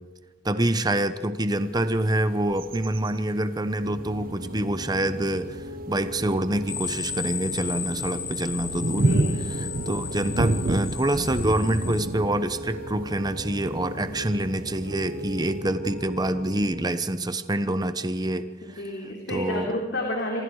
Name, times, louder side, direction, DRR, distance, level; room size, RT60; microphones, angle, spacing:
voice 1, 0.4-5.6 5.9-18.5 19.3-19.7, right 1 dB, 20° right, 11 dB, 1.0 m, -26 dB
sound 1, 1.6-1.7 2.0-14.7 15.3-15.4, right 2 dB, 50° right, 0.8 m, -31 dB
Piano, 3.8-16.7, equal, 85° right, 4.0 m, -38 dB
sound 2, 6.7-12.1, left 6 dB, 45° left, 4.0 m, -34 dB
voice 2, 9.0-9.4 14.0-14.3 18.6-20.4, left 1 dB, 65° left, 0 dB, 3.5 m, -31 dB
27.0 x 25.5 x 4.9 m, 1.2 s
head